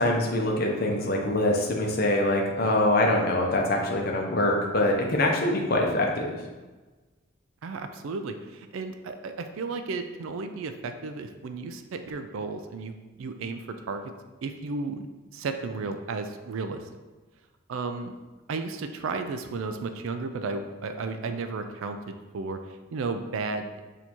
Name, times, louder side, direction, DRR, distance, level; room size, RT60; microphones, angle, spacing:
voice 1, 0.0-6.4, left 1 dB, 45° left, 0 dB, 0.7 m, -24 dB
voice 2, 7.6-14.1 14.4-15.1 15.3-16.9 17.7-18.1 18.5-23.8, right 4 dB, 70° right, 7 dB, 0.4 m, -34 dB
6.4 x 2.7 x 2.9 m, 1.2 s
head